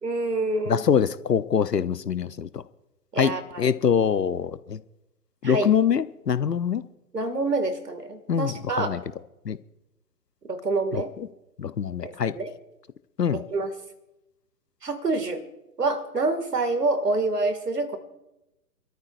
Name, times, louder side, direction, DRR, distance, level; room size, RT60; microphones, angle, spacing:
voice 1, 0.0-0.9 3.1-3.7 5.4-5.7 7.1-9.0 10.5-11.1 12.0-12.5 13.3-13.7 14.8-15.4 15.8-18.0, right 2 dB, 75° right, 2.2 m, -27 dB
voice 2, 0.7-2.6 3.2-4.8 5.4-6.8 8.3-9.0 9.5-9.6 10.9-11.0 11.6-12.3 13.2-13.4, left 7 dB, 80° left, 0.9 m, -24 dB
28.5 x 13.5 x 2.5 m
figure-of-eight pair, 125°, 48 cm